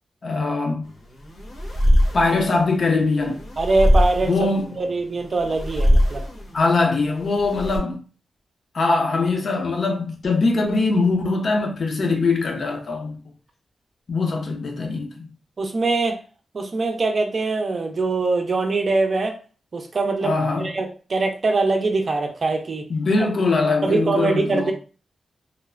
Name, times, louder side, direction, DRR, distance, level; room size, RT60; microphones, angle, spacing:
voice 1, 0.2-0.9 2.1-3.4 4.3-4.8 6.5-8.0 8.7-13.2 14.1-15.3 20.2-20.7 22.9-24.7, left 3 dB, 50° left, 0.5 m, -22 dB
sound 1, 0.8-7.8, equal, 75° left, 1.0 m, -22 dB
voice 2, 3.6-4.3 4.8-6.2 15.6-16.2 16.5-19.4 19.7-22.9 23.8-24.7, right 3 dB, 40° right, 0.5 m, -23 dB
3.1 x 2.0 x 2.3 m
wide cardioid pair, 135°, 0 cm